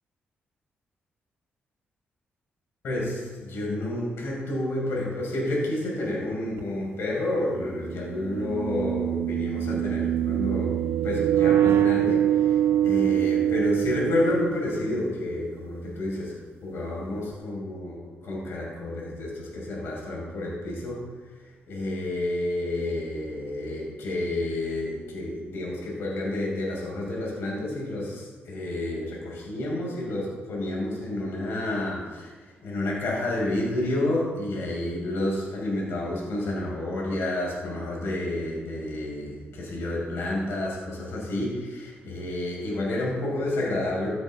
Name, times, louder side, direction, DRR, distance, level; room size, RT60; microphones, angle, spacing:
voice 1, 2.8-21.1 21.4-32.3 32.6-44.1, left 1 dB, 80° left, -3 dB, 5.3 m, -30 dB
sound 1, 6.6-6.7 8.2-15.0, right 11 dB, 85° right, 0.6 m, -24 dB
15.5 x 14.0 x 3.7 m, 1.4 s
cardioid pair, 135°, 4 cm